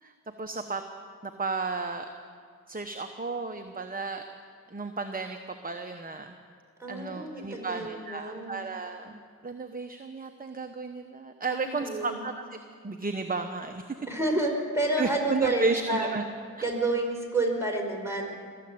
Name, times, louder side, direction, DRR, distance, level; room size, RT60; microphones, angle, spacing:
voice 1, 0.0-0.8 1.2-2.1 2.7-4.2 4.7-5.4 5.6-6.3 6.9-12.6 12.8-13.8 15.0-16.2 16.6-16.7, right 4 dB, 25° right, 6 dB, 0.9 m, -33 dB
voice 2, 6.8-8.6 11.5-12.3 14.1-16.1 16.6-18.3, right 2 dB, 10° right, 0 dB, 5.0 m, -29 dB
21.5 x 7.8 x 8.6 m, 2.2 s
cardioid pair, 40°, 34 cm